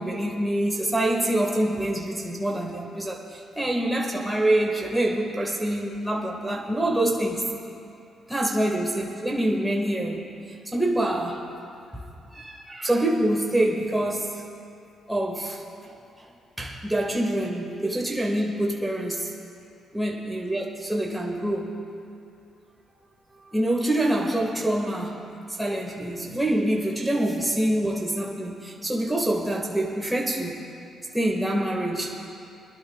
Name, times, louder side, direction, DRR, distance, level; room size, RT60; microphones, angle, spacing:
voice 1, 0.0-7.4 8.3-10.3 10.7-11.4 11.9-12.0 12.3-14.4 15.1-16.3 16.6-19.3 19.9-21.7 23.5-30.6 31.1-32.2, right 1 dB, 5° right, -1 dB, 1.7 m, -26 dB
25.0 x 11.5 x 2.4 m, 2.5 s
cardioid pair, 90°, 0 cm